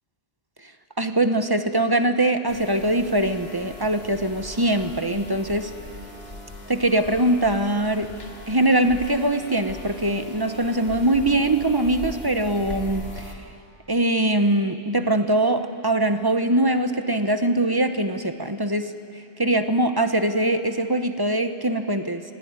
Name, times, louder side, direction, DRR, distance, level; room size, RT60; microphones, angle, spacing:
voice 1, 1.0-5.7 6.7-8.1 8.5-13.4 13.9-22.2, right 1 dB, 20° right, 8 dB, 0.9 m, -22 dB
sound 1, 2.5-13.3, left 2 dB, 50° left, 2.6 m, -40 dB
25.0 x 17.0 x 9.6 m, 2.5 s
omnidirectional pair, 1.3 m